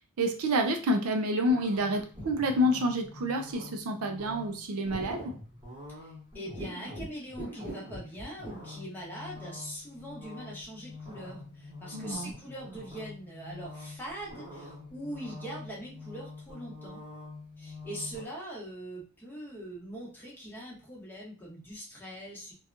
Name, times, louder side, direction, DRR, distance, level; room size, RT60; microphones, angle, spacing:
voice 1, 0.2-5.3 11.9-12.3, equal, 75° right, 5 dB, 0.4 m, -28 dB
sound 1, 1.5-18.3, left 1 dB, 20° right, 1.1 m, -45 dB
voice 2, 6.0-17.0 17.6-22.5, equal, 10° left, -4 dB, 0.9 m, -42 dB
2.7 x 2.3 x 2.5 m, 0.37 s
head